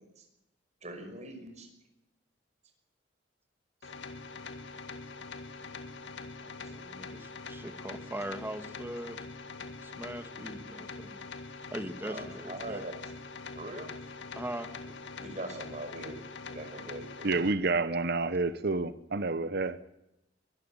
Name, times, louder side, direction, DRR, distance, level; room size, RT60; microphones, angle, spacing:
voice 1, 0.8-1.7 6.6-6.7 12.0-13.1 13.6-13.9 15.2-16.2 16.5-17.3, right 1 dB, 40° right, 5.7 m, -42 dB
sound 1, 3.8-17.5, left 4 dB, 80° left, 2.1 m, -43 dB
voice 2, 6.4-9.2 9.8-11.2 11.7-12.8 14.4-14.7, right 1 dB, 10° right, 1.7 m, -41 dB
voice 3, 17.2-19.8, right 3 dB, 60° right, 0.9 m, -29 dB
23.0 x 13.5 x 8.9 m
head